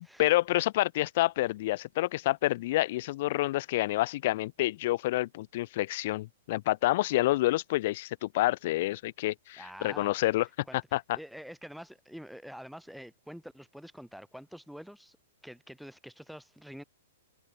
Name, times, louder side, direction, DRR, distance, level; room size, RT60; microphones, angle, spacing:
voice 1, 0.0-10.5 10.9-11.2, left 17 dB, 45° left, 2.7 m, -28 dB
voice 2, 9.6-10.1 10.7-10.8 11.1-15.2 15.4-16.8, equal, ahead, 4.8 m, -46 dB
hypercardioid pair, 155°, 0 cm